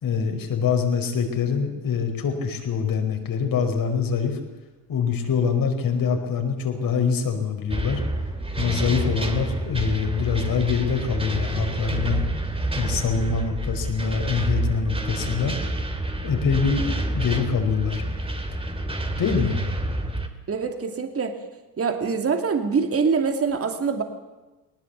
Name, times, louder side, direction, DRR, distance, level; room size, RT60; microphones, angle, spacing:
voice 1, 0.0-4.4 4.9-8.0 8.6-12.2 12.7-15.5 16.2-18.0 19.1-19.6, left 6 dB, 45° left, 5 dB, 4.9 m, -24 dB
sound 1, 7.7-20.3, right 2 dB, 10° right, 2.9 m, -28 dB
voice 2, 20.5-21.4 21.8-24.0, right 5 dB, 30° right, 6 dB, 2.9 m, -24 dB
19.5 x 19.0 x 8.4 m, 1.1 s
supercardioid pair, 85°, 46 cm